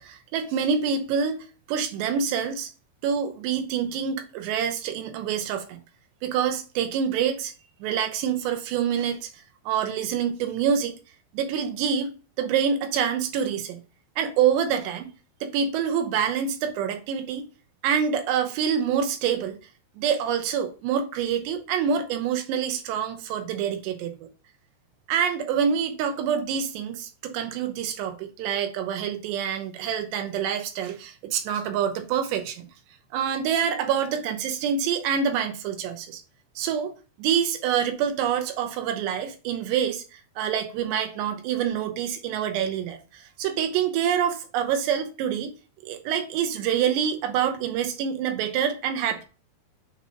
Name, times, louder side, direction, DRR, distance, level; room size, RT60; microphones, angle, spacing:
voice 1, 0.0-2.7 3.0-5.8 6.2-7.5 7.8-10.9 11.3-12.1 12.4-13.8 14.2-15.1 15.4-17.5 17.8-19.6 20.0-24.3 25.1-32.7 33.1-36.2 36.6-36.9 37.2-45.5 45.8-49.2, right 8 dB, 90° right, 3.2 m, -26 dB
8.0 x 2.8 x 5.0 m
omnidirectional pair, 4.8 m